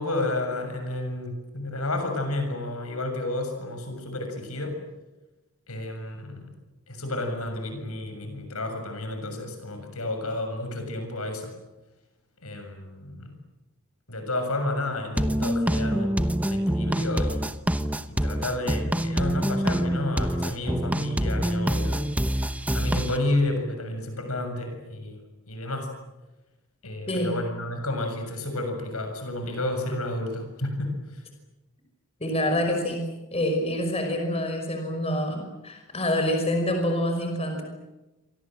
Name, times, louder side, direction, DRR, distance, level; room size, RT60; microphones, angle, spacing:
voice 1, 0.0-4.8 5.7-6.5 6.9-11.5 12.4-13.3 14.1-17.5 18.1-22.0 22.7-25.2 25.5-25.9 26.8-31.2, left 2 dB, 75° left, 6 dB, 7.1 m, -31 dB
sound 1, 15.2-23.2, equal, 5° right, 0.9 m, -26 dB
voice 2, 32.2-33.0 33.3-37.6, left 1 dB, 25° left, 4 dB, 5.5 m, -26 dB
29.0 x 25.5 x 7.8 m, 1.0 s
head